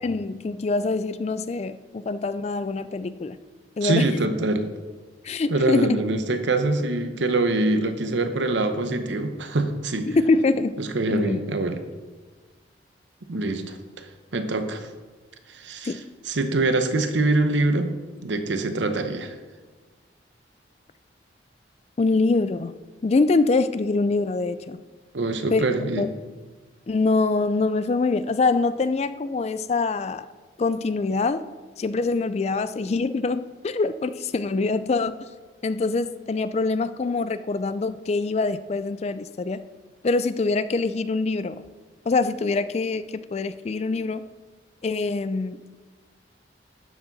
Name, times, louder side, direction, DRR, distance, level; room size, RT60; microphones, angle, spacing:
voice 1, 0.0-3.4 3.8-4.1 5.2-6.0 10.1-11.4 15.8-16.1 22.0-22.7 23.0-24.8 25.5-25.6 26.0-26.1 26.9-30.3 30.6-31.4 31.8-35.2 35.6-39.7 40.0-41.6 42.1-44.3 44.8-45.7, left 3 dB, 35° left, 14 dB, 0.3 m, -24 dB
voice 2, 3.8-4.7 5.5-10.2 10.8-11.8 13.3-14.9 15.5-16.0 16.3-17.9 18.2-19.3 25.1-26.1, right 2 dB, 75° right, 8 dB, 0.9 m, -24 dB
12.0 x 7.2 x 4.0 m, 1.4 s
head